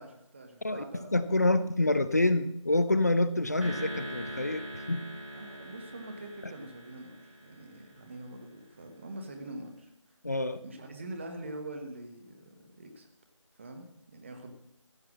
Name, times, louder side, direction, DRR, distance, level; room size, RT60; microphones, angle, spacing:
voice 1, 0.0-1.2 1.5-1.6 5.3-10.2 10.6-13.1 13.5-14.5, right 1 dB, 25° right, 5 dB, 1.2 m, -44 dB
voice 2, 0.6-5.1 10.2-10.6, left 2 dB, 30° left, 14 dB, 0.4 m, -27 dB
sound 1, 3.6-8.1, equal, 85° right, 4.2 m, -42 dB
15.5 x 5.7 x 7.5 m, 0.77 s
figure-of-eight pair, 170°, 16 cm